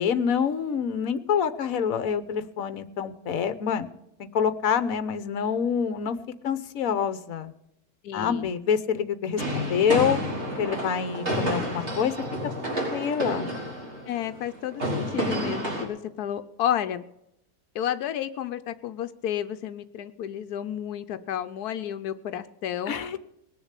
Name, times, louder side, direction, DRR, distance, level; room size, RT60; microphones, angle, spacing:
voice 1, 0.0-3.9 4.3-6.2 6.4-7.5 8.1-10.2 10.6-12.1 12.6-13.5 22.9-23.2, left 7 dB, 65° left, 12 dB, 1.4 m, -26 dB
voice 2, 8.0-8.5 14.1-17.0 17.7-22.9, left 10 dB, 85° left, 10 dB, 1.2 m, -31 dB
sound 1, 9.4-15.8, equal, 45° right, 4.6 m, -30 dB
20.0 x 7.0 x 8.2 m, 0.81 s
omnidirectional pair, 1.6 m